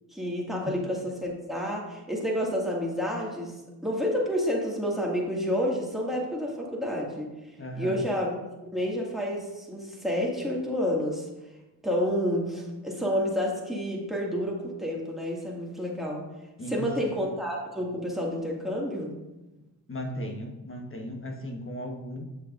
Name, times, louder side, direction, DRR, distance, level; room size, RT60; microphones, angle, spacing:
voice 1, 0.1-3.5 3.8-7.3 7.8-11.3 11.8-16.3 16.7-19.2, equal, ahead, -3 dB, 2.0 m, -29 dB
voice 2, 7.6-8.0 16.6-17.1 19.9-22.3, equal, 30° left, 2 dB, 1.3 m, -36 dB
7.5 x 6.4 x 2.6 m, 1.1 s
cardioid pair, 45°, 41 cm